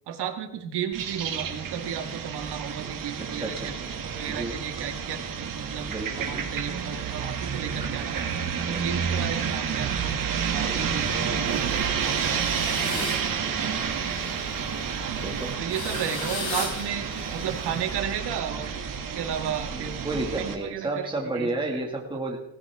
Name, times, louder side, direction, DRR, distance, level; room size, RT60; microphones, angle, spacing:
voice 1, 0.1-3.8 4.1-5.2 5.5-5.9 6.2-8.2 8.7-10.1 10.5-14.4 15.0-15.3 15.6-17.1 17.3-18.8 19.1-20.0 20.4-21.8, right 8 dB, 90° right, 5 dB, 1.8 m, -34 dB
sound 1, 0.9-20.5, right 7 dB, 55° right, 2.0 m, -30 dB
voice 2, 3.3-3.7 4.3-4.5 5.9-6.4 8.7-8.8 12.8-13.1 15.2-15.5 19.7-22.4, right 2 dB, 10° right, 0 dB, 1.9 m, -31 dB
sound 2, 10.5-18.4, left 3 dB, 75° left, 6.0 m, -38 dB
18.0 x 15.0 x 3.5 m, 0.88 s
cardioid pair, 155°, 39 cm